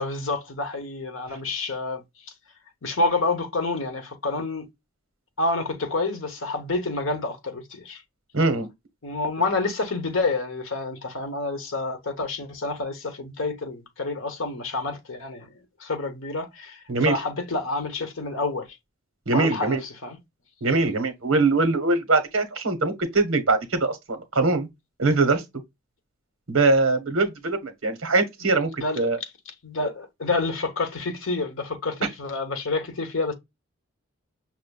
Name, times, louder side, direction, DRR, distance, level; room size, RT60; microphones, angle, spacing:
voice 1, 0.0-2.3 2.8-4.7 5.4-8.0 9.0-15.5 15.8-18.8 19.3-20.2 28.4-28.5 28.8-29.3 29.6-33.3, left 3 dB, 65° left, 1.0 m, -28 dB
voice 2, 8.3-8.7 16.9-17.2 19.3-19.8 20.6-24.7 25.0-25.4 26.5-29.2, right 3 dB, 70° right, 1.1 m, -22 dB
5.8 x 2.5 x 2.3 m
head